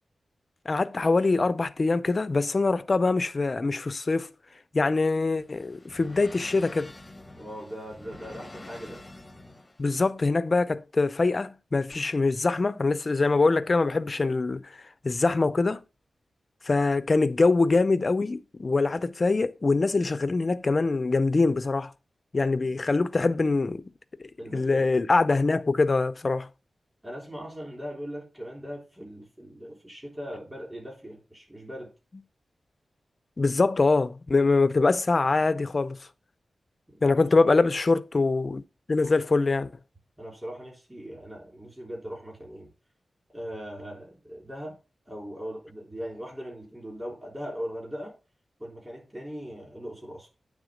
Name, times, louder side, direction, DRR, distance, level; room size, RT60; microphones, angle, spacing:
voice 1, 0.7-4.3 4.7-6.9 9.8-14.8 15.0-15.8 16.6-21.9 22.3-23.8 24.5-26.5 33.4-36.1 37.0-38.6 38.9-39.7, left 3 dB, 40° left, 0.5 m, -24 dB
sound 1, 5.1-9.9, left 2 dB, 15° left, 0.8 m, -47 dB
voice 2, 7.3-9.0 24.4-24.9 27.0-31.9 36.9-37.2 40.2-42.7 43.3-44.8 45.1-48.1 48.6-50.3, equal, 15° right, 3.5 m, -39 dB
9.0 x 3.5 x 5.0 m
wide cardioid pair, 115°, 0 cm